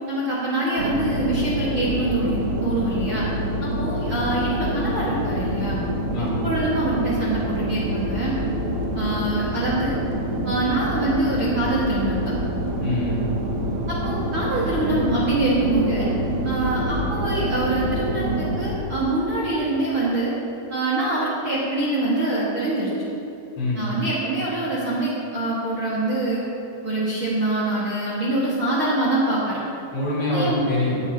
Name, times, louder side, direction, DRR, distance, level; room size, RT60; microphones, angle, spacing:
voice 1, 0.1-3.2 3.6-5.8 6.2-8.3 8.9-10.0 10.4-12.3 13.9-16.1 16.4-20.3 20.7-22.9 23.7-26.4 26.8-29.6 30.3-30.6, right 2 dB, 45° right, -8 dB, 1.8 m, -25 dB
sound 1, 0.8-18.7, equal, 85° right, 1.5 m, -26 dB
voice 2, 6.1-6.5 12.8-13.4 23.6-23.9 29.9-31.0, left 2 dB, 45° left, -8 dB, 4.1 m, -25 dB
18.5 x 9.8 x 2.9 m, 2.7 s
omnidirectional pair, 4.7 m